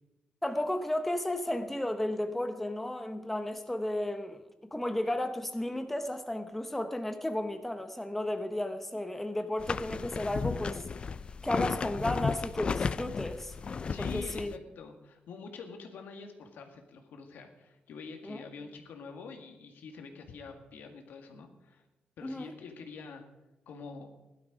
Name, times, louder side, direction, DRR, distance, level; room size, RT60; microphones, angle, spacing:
voice 1, 0.4-4.4 4.7-10.8 11.4-13.5 14.0-14.5 18.2-18.4 22.2-22.5, left 1 dB, 5° left, 0.8 m, -33 dB
sound 1, 9.6-14.6, left 5 dB, 35° left, 0.4 m, -34 dB
voice 2, 13.8-21.8 22.2-23.2 23.7-24.1, left 5 dB, 80° left, 2.0 m, -46 dB
16.0 x 12.0 x 5.0 m
wide cardioid pair, 155°, 3 cm